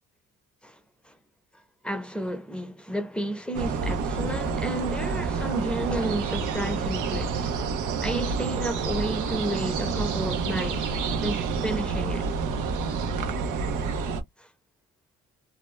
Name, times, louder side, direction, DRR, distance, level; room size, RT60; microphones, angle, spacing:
voice 1, 1.8-7.5 8.0-10.9 11.2-12.3 14.4-14.5, right 1 dB, 5° left, 0.7 m, -32 dB
sound 1, 3.5-14.2, right 5 dB, 90° right, 0.9 m, -28 dB
2.7 x 2.2 x 3.0 m
cardioid pair, 90°, 30 cm